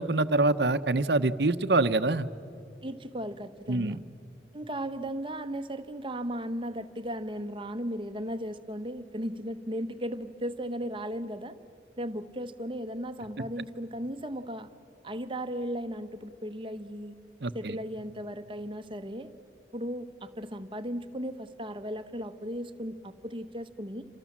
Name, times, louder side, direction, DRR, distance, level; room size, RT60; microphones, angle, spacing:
voice 1, 0.0-2.3 3.7-4.0 17.4-17.8, right 2 dB, 70° right, 11 dB, 0.9 m, -25 dB
voice 2, 2.8-4.0 4.5-11.6 12.0-14.7 15.0-17.2 17.5-19.3 19.7-24.0, equal, 30° right, 10 dB, 1.1 m, -36 dB
28.0 x 27.5 x 7.4 m, 2.6 s
head